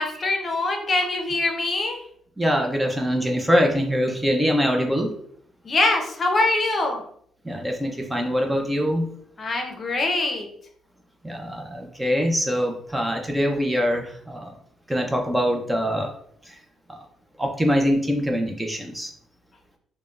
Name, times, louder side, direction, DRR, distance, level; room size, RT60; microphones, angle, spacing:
voice 1, 0.0-2.0 5.6-7.0 9.4-10.5, left 2 dB, 40° left, 3 dB, 0.6 m, -23 dB
voice 2, 2.4-5.1 7.4-9.1 11.2-14.5 14.9-16.1 16.5-16.6 16.9-17.0 17.4-19.1, equal, 10° right, 2 dB, 0.5 m, -23 dB
3.5 x 2.1 x 2.4 m, 0.64 s
cardioid pair, 90°, 0 cm